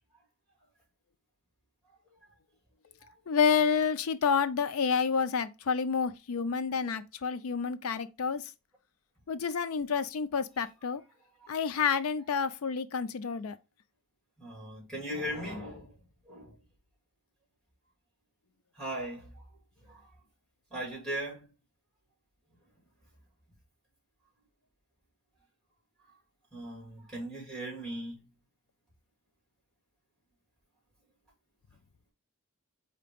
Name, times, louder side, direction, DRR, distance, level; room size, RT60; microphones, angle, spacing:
voice 1, 3.3-8.5 9.3-11.0 11.5-13.6, left 6 dB, 85° left, 0.5 m, -29 dB
voice 2, 14.4-16.0 16.3-16.5 18.8-19.4 19.9-20.0 20.7-21.5 26.5-28.2, right 1 dB, 5° left, 2.0 m, -38 dB
4.9 x 2.9 x 3.5 m
head